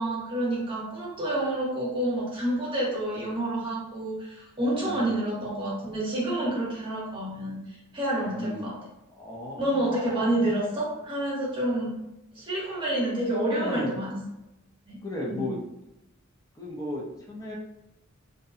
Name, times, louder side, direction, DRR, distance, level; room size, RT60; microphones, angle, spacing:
voice 1, 0.0-7.6 7.9-8.8 9.6-12.0 12.3-14.2 14.9-15.0 15.3-15.5, right 1 dB, 25° right, -6 dB, 0.9 m, -28 dB
voice 2, 4.7-5.2 8.2-8.7 9.2-9.9 13.5-14.0 15.0-15.6 16.6-17.5, left 1 dB, 15° left, -3 dB, 0.5 m, -35 dB
2.7 x 2.1 x 2.4 m, 0.93 s
head